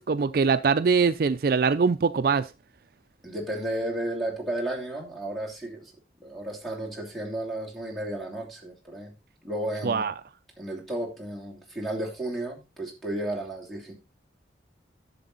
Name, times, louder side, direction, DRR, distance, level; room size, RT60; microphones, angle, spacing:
voice 1, 0.0-2.5 9.8-10.1, right 5 dB, 55° right, 0.4 m, -23 dB
voice 2, 3.2-5.9 6.2-9.1 9.4-10.1 10.6-13.9, right 1 dB, ahead, 2.8 m, -33 dB
11.0 x 6.9 x 3.9 m
head